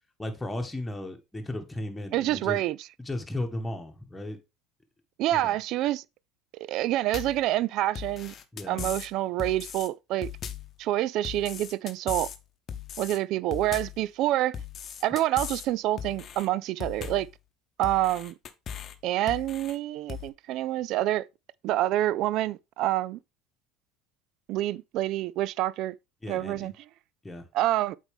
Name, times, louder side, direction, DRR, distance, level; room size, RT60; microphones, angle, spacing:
voice 1, 0.2-2.6 3.0-4.4 5.3-5.6 8.5-8.9 26.2-26.7 27.2-27.5, left 1 dB, 10° left, 1.6 m, -35 dB
voice 2, 2.1-2.8 5.2-6.0 6.7-8.3 8.7-10.3 10.8-12.3 13.0-14.6 15.0-17.3 17.8-18.3 19.0-21.3 21.6-23.2 24.5-25.9 26.3-26.7 27.5-28.0, right 14 dB, 60° right, 0.3 m, -27 dB
sound 1, 7.1-7.4 8.0-9.1 9.4-9.9 10.2-10.7 11.2-12.4 12.7-13.2 13.5-14.0 14.5-15.7 16.0-16.5 16.8-17.3 17.8-19.0 19.3-19.8 20.1-20.3, left 8 dB, 40° left, 0.9 m, -38 dB
8.0 x 4.6 x 3.5 m
hypercardioid pair, 75°, 0 cm